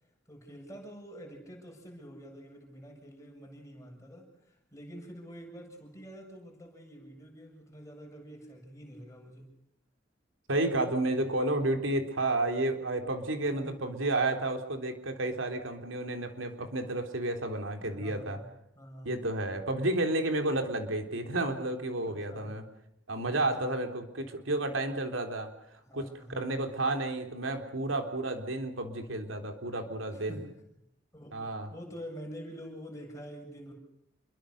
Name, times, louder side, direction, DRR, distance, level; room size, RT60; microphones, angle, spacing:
voice 1, 0.3-9.5 13.5-13.8 17.7-19.2 22.0-22.5 23.3-23.7 25.8-26.7 30.1-30.8 31.1-31.4 31.7-33.7, equal, 15° left, 1 dB, 7.8 m, -47 dB
voice 2, 10.5-18.4 19.0-22.6 23.1-30.4 31.3-31.7, right 2 dB, 85° right, 4 dB, 3.8 m, -31 dB
28.5 x 23.5 x 6.7 m, 0.77 s
head